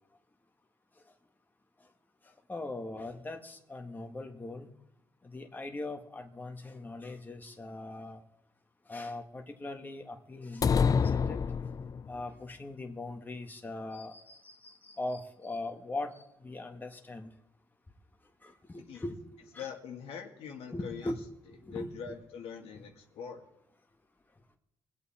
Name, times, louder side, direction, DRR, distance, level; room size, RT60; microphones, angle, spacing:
voice 1, 2.5-4.7 5.3-8.2 8.9-10.7 11.0-11.4 12.1-16.1 16.4-17.3 18.4-19.7 20.7-21.2 21.6-21.9, left 2 dB, 20° left, 4 dB, 1.7 m, -40 dB
sound 1, 10.6-12.2, left 6 dB, 35° left, 0.5 m, -27 dB
voice 2, 19.6-21.1 21.7-23.4, left 7 dB, 85° left, 2 dB, 2.0 m, -43 dB
23.0 x 8.3 x 4.3 m, 0.83 s
cardioid pair, 100°, 10 cm